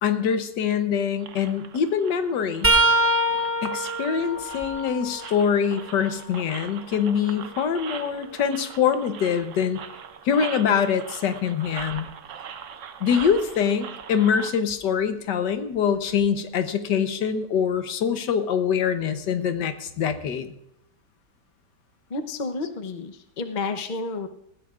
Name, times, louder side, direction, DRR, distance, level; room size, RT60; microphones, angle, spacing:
voice 1, 0.0-2.7 3.6-9.8 10.2-12.1 13.0-20.5, left 7 dB, 80° left, 9 dB, 1.5 m, -24 dB
sound 1, 1.2-14.5, right 8 dB, 55° right, 1.0 m, -41 dB
sound 2, 2.6-6.4 6.9-8.9 11.8-12.0 13.2-13.4 14.7-14.8, right 1 dB, 15° right, 0.5 m, -26 dB
voice 2, 22.1-24.3, left 3 dB, 40° left, 6 dB, 0.7 m, -31 dB
20.0 x 15.0 x 2.5 m, 0.75 s
omnidirectional pair, 1.9 m